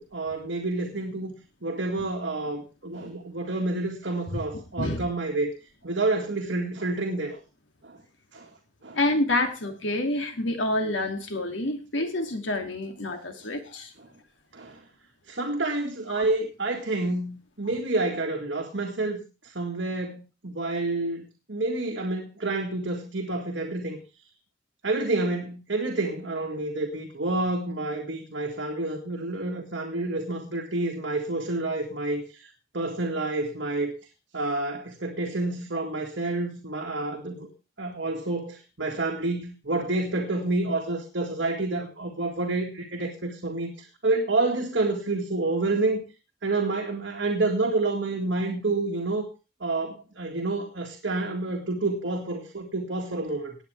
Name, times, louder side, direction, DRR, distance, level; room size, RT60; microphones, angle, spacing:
voice 1, 0.0-1.3 1.6-5.5 5.8-7.4 7.8-8.0 8.3-8.5 8.8-9.0 14.0-14.1 14.5-14.8 15.3-24.0 24.8-33.9 34.3-37.5 37.8-46.1 46.4-49.3 49.6-53.6, right 2 dB, 70° right, 0 dB, 2.0 m, -29 dB
voice 2, 8.9-13.9 16.1-16.3, left 1 dB, 90° left, 4 dB, 2.6 m, -28 dB
18.5 x 8.7 x 3.4 m, 0.31 s
head